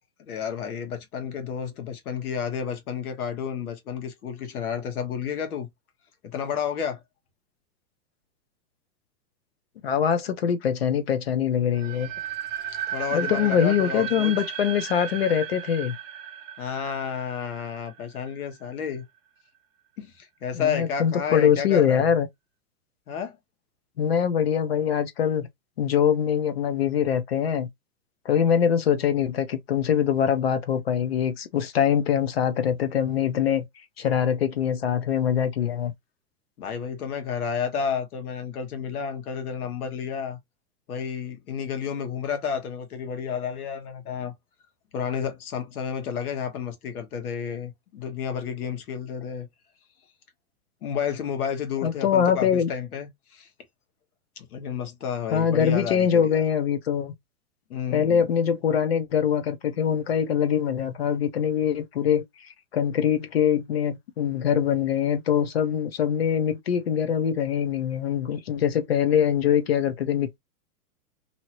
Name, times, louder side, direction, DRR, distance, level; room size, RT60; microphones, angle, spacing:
voice 1, 0.2-5.7 6.2-7.0 12.9-14.3 16.6-19.1 20.0-22.1 23.1-23.4 36.6-40.4 40.9-44.3 44.9-49.5 50.8-53.5 54.4-56.4 57.7-58.2, left 7 dB, 70° left, 1.3 m, -31 dB
voice 2, 9.8-12.1 13.1-16.0 20.5-22.3 24.0-25.5 25.8-27.7 28.3-33.7 34.0-35.9 51.8-52.7 55.3-57.1 57.9-62.2 62.7-70.4, left 8 dB, 45° left, 0.5 m, -23 dB
sound 1, 11.7-18.6, right 9 dB, 55° right, 0.6 m, -35 dB
2.7 x 2.7 x 2.9 m
supercardioid pair, 170°, 46 cm